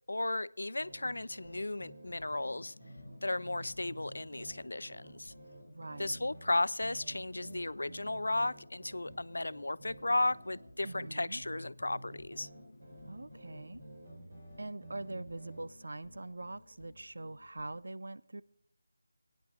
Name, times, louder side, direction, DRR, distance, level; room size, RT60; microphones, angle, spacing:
voice 1, 0.1-2.7 3.2-5.3 6.0-12.5, left 2 dB, 75° left, 0.4 m, -34 dB
sound 1, 0.6-15.8, right 1 dB, 30° right, 4.6 m, -52 dB
sound 2, 1.4-17.8, left 2 dB, 40° left, 1.1 m, -58 dB
voice 2, 5.7-6.3 10.8-11.4 13.1-13.8 14.6-18.4, right 2 dB, 55° right, 0.4 m, -43 dB
16.5 x 10.5 x 3.9 m
figure-of-eight pair, 180°, 0 cm